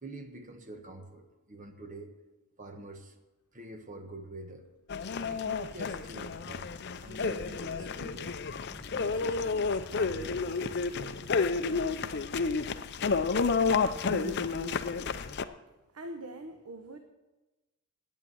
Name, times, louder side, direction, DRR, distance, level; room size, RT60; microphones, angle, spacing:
voice 1, 0.0-2.1 2.6-3.1 3.5-4.7 5.3-8.4 8.9-10.9 13.9-14.5, right 1 dB, 35° right, 6 dB, 1.2 m, -44 dB
sound 1, 4.1-4.3 4.7-4.9 5.2-5.4 6.0-6.1 6.4-6.5 7.3-7.4 8.0-15.5, left 3 dB, 80° left, 0.9 m, -53 dB
sound 2, 4.9-15.4, left 4 dB, 50° left, 0.5 m, -31 dB
sound 3, 6.2-12.5, equal, 15° left, 1.2 m, -55 dB
voice 2, 15.9-17.0, right 1 dB, 85° right, 6 dB, 1.0 m, -42 dB
9.0 x 8.8 x 9.2 m, 1.1 s
head